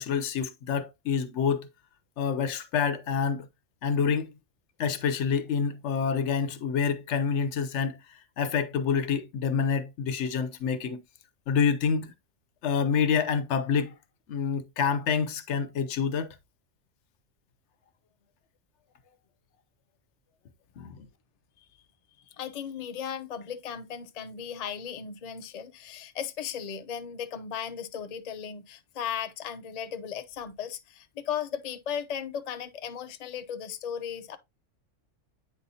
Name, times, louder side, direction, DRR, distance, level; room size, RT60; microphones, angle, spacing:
voice 1, 0.0-1.7 2.2-3.5 3.8-4.4 4.8-8.0 8.4-11.0 11.5-12.1 12.6-13.9 14.3-16.4 20.8-21.1, left 6 dB, 70° left, 0.9 m, -27 dB
voice 2, 22.3-34.4, left 8 dB, 45° left, 0.5 m, -36 dB
8.9 x 4.1 x 2.7 m
omnidirectional pair, 1.3 m